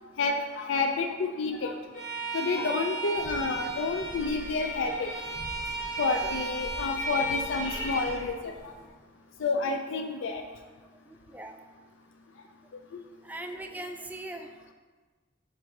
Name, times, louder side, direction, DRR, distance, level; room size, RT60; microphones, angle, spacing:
voice 1, 0.2-1.8 2.3-5.1 6.0-8.7 9.4-10.4 12.9-13.0, left 3 dB, 85° left, 4 dB, 0.4 m, -29 dB
Bowed string instrument, 1.9-8.2, right 1 dB, 35° left, 2.0 m, -35 dB
sound 1, 3.2-8.9, equal, 60° left, 1.1 m, -45 dB
voice 2, 11.3-11.6 13.2-14.5, right 1 dB, 10° right, 5 dB, 0.3 m, -40 dB
7.5 x 2.7 x 5.8 m, 1.4 s
head